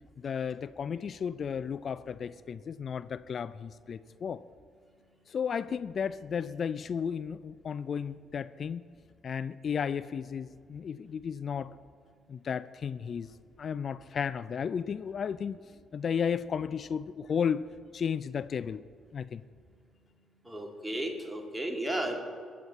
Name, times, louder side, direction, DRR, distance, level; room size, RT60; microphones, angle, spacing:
voice 1, 0.2-4.4 5.3-8.8 9.2-11.7 12.3-13.3 13.6-15.6 15.9-17.6 17.9-18.8 19.1-19.4, left 7 dB, 50° left, 16 dB, 0.3 m, -33 dB
voice 2, 20.4-22.1, right 1 dB, 15° right, 2 dB, 2.3 m, -34 dB
22.0 x 8.7 x 4.2 m, 2.2 s
figure-of-eight pair, 45°, 0 cm